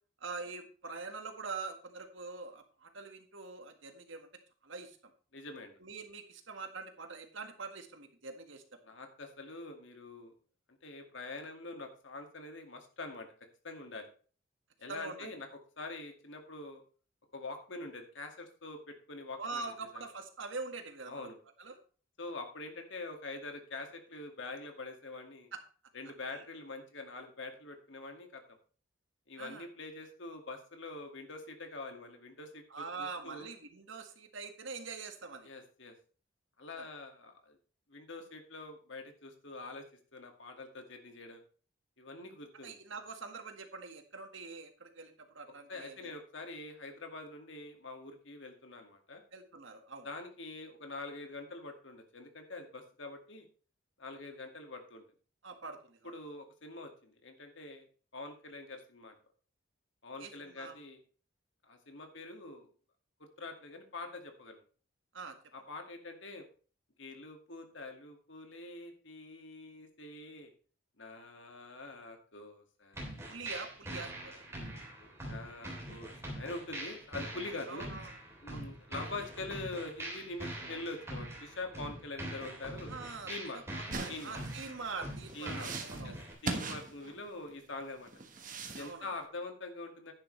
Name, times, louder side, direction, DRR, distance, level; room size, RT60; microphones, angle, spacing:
voice 1, 0.2-4.3 4.6-5.1 5.8-8.6 14.9-15.3 19.4-21.3 21.6-21.8 25.5-25.6 26.3-26.4 29.4-29.6 32.7-35.5 36.8-36.9 42.6-46.1 49.3-50.1 55.4-56.1 60.2-60.8 65.1-65.3 73.3-74.5 77.7-78.1 78.5-78.7 82.9-86.4 88.8-89.1, right 4 dB, 70° right, 6 dB, 1.7 m, -44 dB
voice 2, 5.3-5.8 8.8-10.3 10.8-13.3 13.6-14.1 14.8-15.5 15.8-16.8 17.3-19.7 19.9-20.1 21.1-21.4 22.2-25.5 25.9-28.4 29.3-33.5 35.4-35.9 36.6-37.6 37.9-39.9 40.1-41.4 42.0-42.7 45.7-49.2 50.0-53.5 54.0-55.0 56.0-57.9 58.1-59.2 60.0-61.0 61.6-62.7 63.2-64.6 65.5-66.5 67.0-70.5 71.0-73.3 74.6-77.9 78.4-82.9 83.3-83.6 84.1-84.4 85.3-85.8 86.0-86.2 86.4-88.1 88.7-90.1, left 2 dB, 70° left, 4 dB, 2.2 m, -45 dB
sound 1, 72.9-86.3, right 1 dB, 15° right, 3.5 m, -43 dB
sound 2, 83.9-87.5 88.1-88.9, right 3 dB, 40° right, 1.4 m, -40 dB
10.5 x 10.5 x 3.3 m, 0.40 s
head